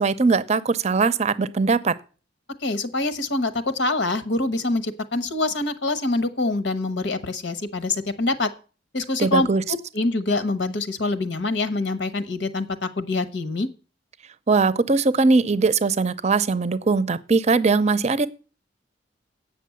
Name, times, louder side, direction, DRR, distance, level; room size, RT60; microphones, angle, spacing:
voice 1, 0.0-1.9 9.2-9.6 14.5-18.3, right 4 dB, 35° right, 0.6 m, -20 dB
voice 2, 2.6-8.5 8.9-9.5 9.9-13.7, left 2 dB, 80° left, 1.1 m, -25 dB
8.5 x 6.1 x 8.3 m
head